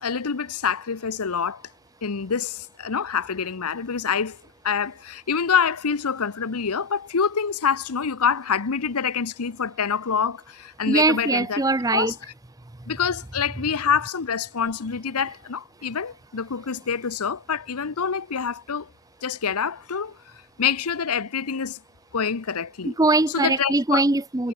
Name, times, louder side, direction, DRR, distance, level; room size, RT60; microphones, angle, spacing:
voice 1, 0.0-1.6 2.0-4.4 4.6-11.6 11.9-12.1 12.9-18.9 19.2-20.2 20.6-21.8 22.1-23.0 23.3-24.0, left 6 dB, 85° left, 0.9 m, -26 dB
voice 2, 10.9-12.1 22.9-24.5, right 2 dB, 15° right, 0.6 m, -21 dB
head